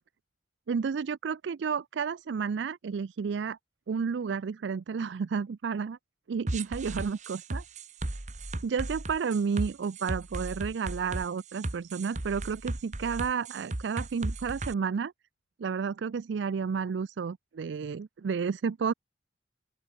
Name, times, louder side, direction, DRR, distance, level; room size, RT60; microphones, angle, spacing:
voice 1, 0.7-3.6 3.9-6.0 6.3-7.6 8.6-15.1 15.6-18.9, right 6 dB, 75° right, 0.4 m, -31 dB
sound 1, 6.5-14.7, right 2 dB, 40° right, 1.2 m, -35 dB
open air
head